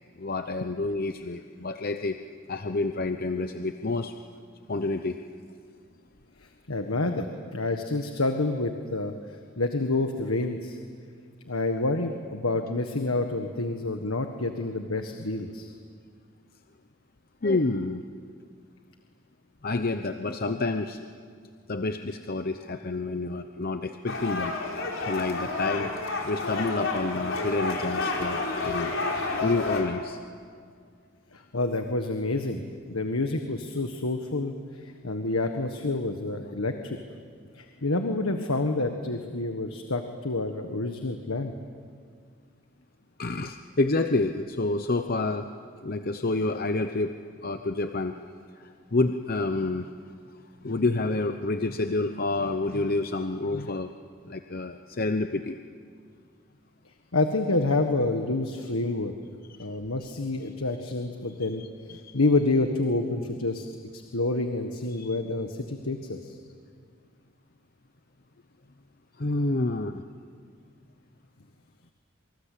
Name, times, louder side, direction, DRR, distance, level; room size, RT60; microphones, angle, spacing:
voice 1, 0.2-2.2 2.5-4.1 4.7-5.2 17.4-18.0 19.6-21.1 21.7-24.6 25.1-25.9 26.2-29.0 29.4-30.2 43.2-45.5 45.8-47.1 47.4-48.1 48.6-49.9 50.6-53.9 54.2-55.6 59.6-59.7 61.6-62.2 64.9-65.2 69.2-70.0, left 2 dB, 45° left, 7 dB, 0.8 m, -28 dB
voice 2, 6.7-9.1 9.6-10.8 11.5-15.7 31.3-37.0 37.5-41.5 57.1-59.1 59.6-61.6 62.1-63.6 63.9-66.4, left 2 dB, 90° left, 6 dB, 1.6 m, -28 dB
sound 1, 24.1-29.8, left 3 dB, 65° left, 4.9 m, -30 dB
27.5 x 25.0 x 8.5 m, 2.1 s
head